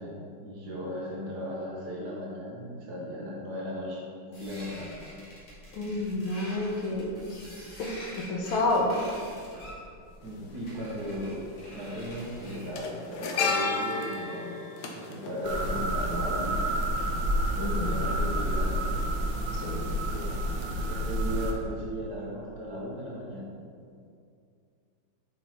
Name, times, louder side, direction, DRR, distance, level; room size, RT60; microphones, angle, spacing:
voice 1, 0.0-4.9 10.2-11.5 11.7-14.5 14.8-16.6 17.5-18.8 19.7-20.4 20.9-23.5, equal, 60° right, -3 dB, 1.5 m, -37 dB
sound 1, 4.3-12.8, equal, 35° left, 1.5 m, -46 dB
voice 2, 5.7-7.4 7.8-8.9 17.6-18.0 19.5-19.8, left 2 dB, 85° left, 1 dB, 1.6 m, -30 dB
sound 2, 10.2-10.3 11.6-11.8 12.1-16.4 16.7-16.8, left 4 dB, 65° left, 1.2 m, -32 dB
sound 3, 15.4-21.5, right 1 dB, 80° right, 1.4 m, -29 dB
6.0 x 4.1 x 4.3 m, 2.3 s
omnidirectional pair, 2.1 m